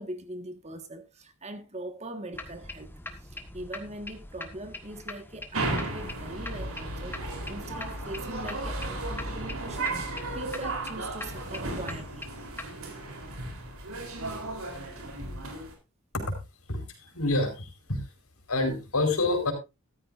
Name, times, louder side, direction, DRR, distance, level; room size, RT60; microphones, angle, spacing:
voice 1, 0.0-12.3, right 1 dB, 30° right, 1.7 m, -42 dB
sound 1, 2.3-12.7, left 2 dB, 10° left, 1.4 m, -43 dB
sound 2, 5.5-15.7, right 2 dB, 75° right, 3.8 m, -35 dB
voice 2, 16.7-18.1 18.5-19.5, left 2 dB, 85° left, 4.7 m, -28 dB
13.5 x 13.5 x 2.6 m
head